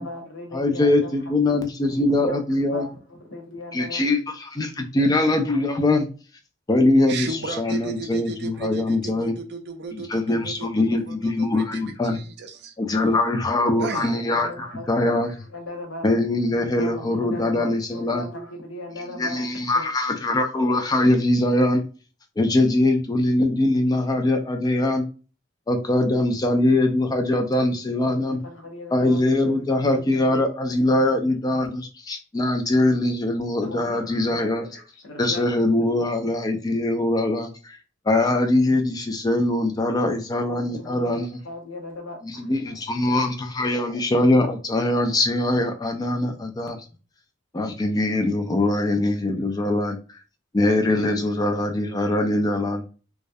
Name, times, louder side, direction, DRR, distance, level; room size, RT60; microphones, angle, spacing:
voice 1, 0.0-1.3 1.8-4.0 13.9-14.0 14.3-16.1 16.7-19.4 19.7-19.9 28.2-30.4 33.6-35.6 40.5-42.8, left 2 dB, 80° left, 0.7 m, -38 dB
voice 2, 0.5-2.9 3.7-6.1 6.7-7.3 7.6-9.3 9.9-12.2 12.8-15.3 16.0-18.2 19.1-21.8 22.4-25.0 25.7-28.4 28.9-34.7 35.2-37.8 38.1-41.3 42.2-46.9 47.5-50.2 50.5-52.8, left 2 dB, 20° left, 0.3 m, -22 dB
voice 3, 7.1-10.7 11.1-12.7 13.8-14.1, right 4 dB, 55° right, 0.4 m, -34 dB
2.3 x 2.1 x 2.5 m
head